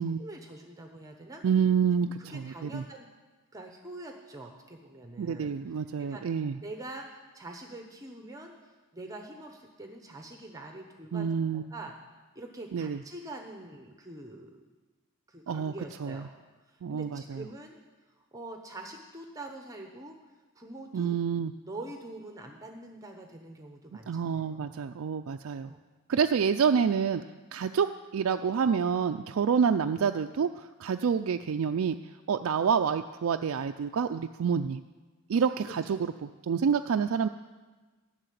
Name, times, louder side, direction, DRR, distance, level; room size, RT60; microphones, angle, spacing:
voice 1, 0.1-1.4 2.2-3.1 3.5-6.2 6.6-11.9 12.3-14.6 15.3-16.3 16.7-17.8 18.3-20.2 20.5-21.2 21.7-24.8 25.6-25.8 35.6-36.0, right 2 dB, 15° right, 3 dB, 0.9 m, -45 dB
voice 2, 1.4-2.8 5.2-6.5 11.1-11.6 12.7-13.0 15.5-15.7 16.0-16.2 16.8-17.4 20.9-21.5 24.1-25.7 26.1-27.2 27.5-32.0 32.3-34.8 35.3-37.3, right 6 dB, 65° right, 7 dB, 0.4 m, -28 dB
13.0 x 6.6 x 9.3 m, 1.3 s
head